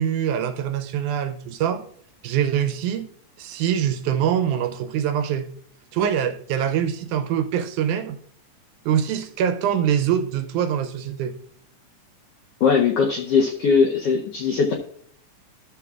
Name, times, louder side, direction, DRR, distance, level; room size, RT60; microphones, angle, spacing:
voice 1, 0.0-1.8 2.2-3.1 3.4-5.5 5.9-8.2 8.9-11.3, right 9 dB, 80° right, 9 dB, 1.9 m, -24 dB
voice 2, 12.6-14.7, left 5 dB, 90° left, 0 dB, 1.3 m, -20 dB
12.5 x 6.9 x 2.3 m, 0.62 s
omnidirectional pair, 3.6 m